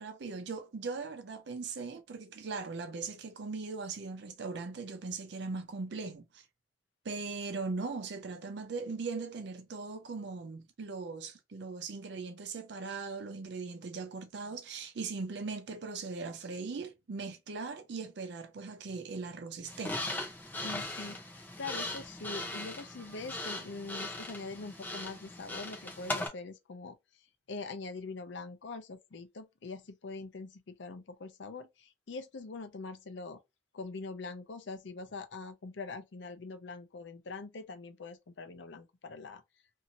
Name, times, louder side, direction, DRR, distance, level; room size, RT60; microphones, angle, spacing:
voice 1, 0.0-6.5 7.0-20.0, right 4 dB, 65° right, 0.5 m, -39 dB
sound 1, 19.7-26.3, left 2 dB, 10° left, 0.6 m, -39 dB
voice 2, 20.6-27.0 27.5-33.4 33.7-39.4, left 3 dB, 75° left, 0.5 m, -43 dB
2.8 x 2.7 x 2.5 m
head